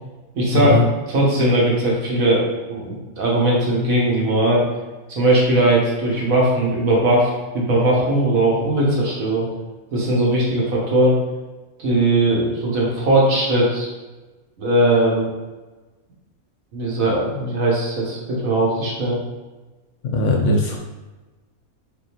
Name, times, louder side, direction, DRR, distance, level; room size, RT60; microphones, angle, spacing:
voice 1, 0.3-0.8 1.1-4.6 5.1-9.5 9.9-11.2 11.8-13.9 14.6-15.3 16.7-19.2, right 1 dB, 70° right, -4 dB, 1.5 m, -19 dB
voice 2, 20.1-20.8, left 2 dB, 65° left, 1 dB, 0.8 m, -18 dB
4.3 x 3.5 x 2.9 m, 1.2 s
omnidirectional pair, 1.5 m